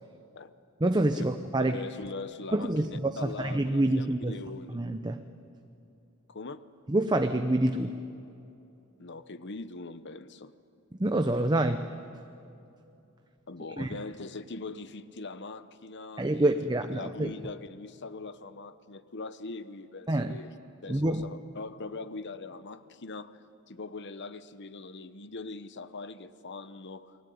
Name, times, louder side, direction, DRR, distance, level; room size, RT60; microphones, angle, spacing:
voice 1, 0.8-1.7 2.5-4.4 4.7-5.2 6.9-7.9 11.0-11.9 13.8-14.0 16.2-17.3 20.1-20.4 20.9-21.3, right 1 dB, 20° right, 7 dB, 0.7 m, -27 dB
voice 2, 1.6-4.8 6.3-6.6 9.0-10.5 13.5-16.5 16.9-20.5 20.8-23.3 23.7-27.2, left 3 dB, 55° left, 13 dB, 1.0 m, -41 dB
29.5 x 21.0 x 9.5 m, 2.7 s
head